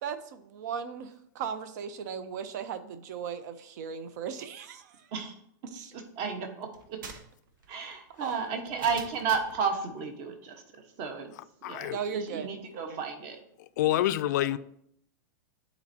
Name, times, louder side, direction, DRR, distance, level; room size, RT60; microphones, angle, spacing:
voice 1, 0.0-4.9 5.7-5.9 8.2-8.8 11.9-12.5 12.7-13.0, right 7 dB, 60° right, 11 dB, 0.8 m, -37 dB
voice 2, 5.9-6.7 7.7-10.6 11.0-11.3 11.6-13.4 13.9-14.0, right 6 dB, 40° right, 5 dB, 1.2 m, -33 dB
sound 1, 6.7-9.6, right 4 dB, 80° right, 1.1 m, -47 dB
voice 3, 11.6-12.0 13.8-14.6, left 14 dB, 60° left, 13 dB, 0.4 m, -27 dB
11.0 x 4.4 x 2.8 m, 0.70 s
supercardioid pair, 150°, 11 cm